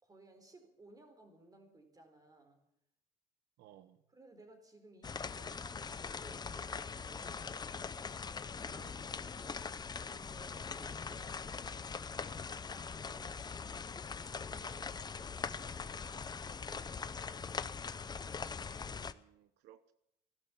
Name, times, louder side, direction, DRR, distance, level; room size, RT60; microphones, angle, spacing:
voice 1, 0.0-2.6 4.1-7.9 10.0-12.0 12.7-13.4 14.3-17.6, right 2 dB, 20° right, 4.3 m, -60 dB
voice 2, 3.6-4.0 8.7-9.6 19.0-19.9, right 12 dB, 90° right, 0.9 m, -61 dB
sound 1, 5.0-19.1, left 5 dB, 25° left, 0.7 m, -42 dB
16.5 x 12.0 x 7.2 m
cardioid pair, 110°, 17 cm